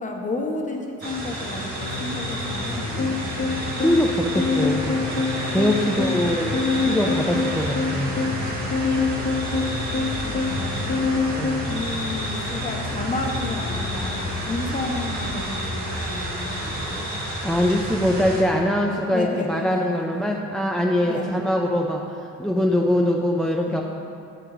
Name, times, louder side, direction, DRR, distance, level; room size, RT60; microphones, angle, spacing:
voice 1, 0.0-3.2 7.9-8.8 10.2-11.2 11.7-17.1 19.1-20.3 21.0-21.4 23.7-23.8, left 2 dB, 25° left, 1 dB, 0.9 m, -32 dB
sound 1, 1.0-18.4, right 1 dB, 65° right, 1.6 m, -30 dB
sound 2, 1.8-16.3, left 8 dB, 65° left, 0.4 m, -36 dB
sound 3, 3.0-11.7, left 4 dB, 45° left, 1.1 m, -25 dB
voice 2, 3.7-5.0 5.5-8.2 11.4-11.7 17.4-23.8, left 1 dB, ahead, 0 dB, 0.3 m, -23 dB
7.7 x 4.7 x 3.8 m, 2.6 s
cardioid pair, 90°, 30 cm